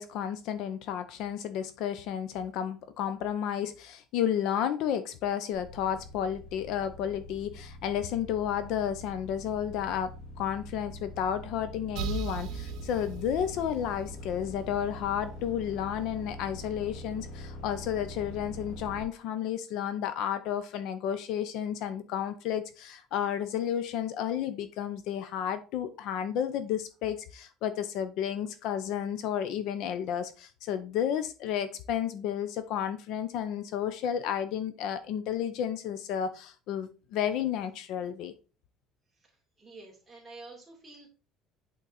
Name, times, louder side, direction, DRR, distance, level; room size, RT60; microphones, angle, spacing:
voice 1, 0.0-10.1 10.4-38.3, left 9 dB, 65° left, 0.7 m, -32 dB
sound 1, 5.5-19.0, left 1 dB, 80° left, 2.6 m, -44 dB
sound 2, 12.0-15.6, right 7 dB, 65° right, 1.0 m, -39 dB
voice 2, 39.2-41.1, right 3 dB, 10° right, 2.6 m, -49 dB
8.3 x 4.0 x 4.0 m
cardioid pair, 175°, 0 cm